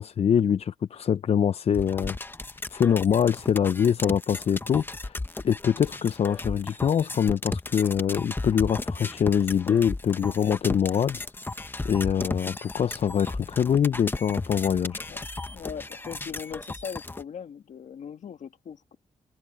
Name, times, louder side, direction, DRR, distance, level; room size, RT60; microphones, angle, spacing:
voice 1, 0.0-2.2 2.7-5.2 5.4-11.2 11.8-15.0, left 8 dB, 55° left, 0.5 m, -24 dB
sound 1, 1.7-17.2, left 2 dB, 15° left, 0.8 m, -35 dB
voice 2, 15.5-19.0, left 7 dB, 70° left, 1.7 m, -39 dB
wide cardioid pair, 110°, 13 cm